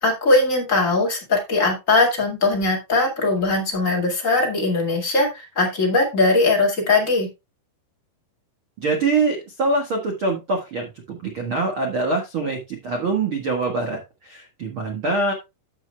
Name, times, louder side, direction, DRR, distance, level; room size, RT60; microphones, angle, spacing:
voice 1, 0.0-7.3, left 2 dB, 35° left, 0 dB, 1.3 m, -20 dB
voice 2, 8.8-15.3, right 3 dB, 85° right, 2 dB, 1.1 m, -24 dB
14.0 x 6.5 x 2.3 m, 0.23 s
omnidirectional pair, 5.1 m